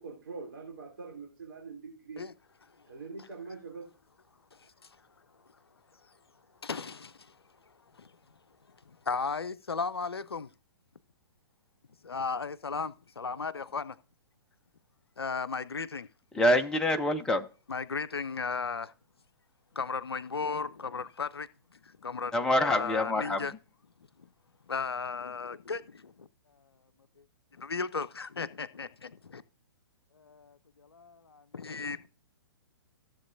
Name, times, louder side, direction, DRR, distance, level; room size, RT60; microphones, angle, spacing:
voice 1, 0.0-2.2 2.9-3.8, right 4 dB, 60° right, 3.0 m, -43 dB
voice 2, 4.5-4.9 6.6-7.3 8.0-8.1 9.1-10.5 12.0-14.0 15.2-16.1 17.7-18.9 19.8-21.5 21.8-23.5 24.7-26.3 27.6-29.4 30.2-30.6 30.9-32.1, left 5 dB, 80° left, 0.5 m, -35 dB
voice 3, 16.3-17.5 22.3-23.4, left 1 dB, 5° left, 0.6 m, -26 dB
15.0 x 7.3 x 2.6 m
figure-of-eight pair, 120°, 13 cm